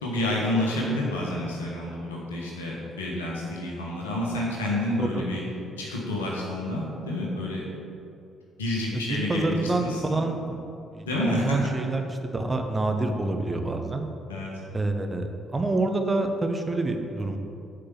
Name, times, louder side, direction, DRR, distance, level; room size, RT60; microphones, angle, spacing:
voice 1, 0.0-5.4 5.8-7.6 8.6-10.2 11.1-11.7 14.3-14.5, left 1 dB, 85° left, -3 dB, 1.4 m, -29 dB
voice 2, 8.9-10.6 10.9-14.1 14.7-17.4, right 2 dB, 25° right, 5 dB, 1.1 m, -27 dB
8.3 x 5.3 x 7.3 m, 2.6 s
figure-of-eight pair, 45°, 0 cm